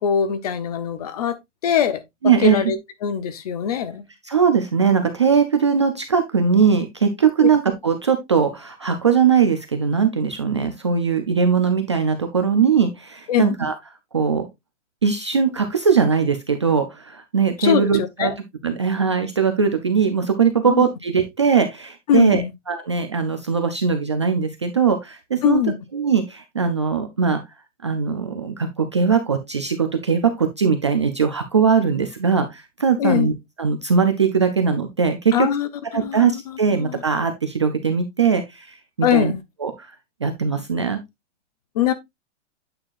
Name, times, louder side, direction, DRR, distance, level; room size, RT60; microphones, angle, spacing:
voice 1, 0.0-1.4 1.6-2.8 3.0-4.0 7.4-7.5 13.3-13.5 17.6-18.3 20.7-20.8 22.1-22.5 25.4-25.7 33.0-33.3 35.3-35.7 35.9-37.0 39.0-39.4 41.7-41.9, left 9 dB, 30° left, 0.7 m, -22 dB
voice 2, 2.2-2.7 4.2-13.7 14.1-14.5 15.0-18.3 18.6-25.6 25.9-27.4 27.8-33.3 33.6-35.5 35.9-39.3 39.6-39.9 40.2-41.0, right 6 dB, 25° right, 0.3 m, -20 dB
8.8 x 5.6 x 2.4 m
hypercardioid pair, 170°, 36 cm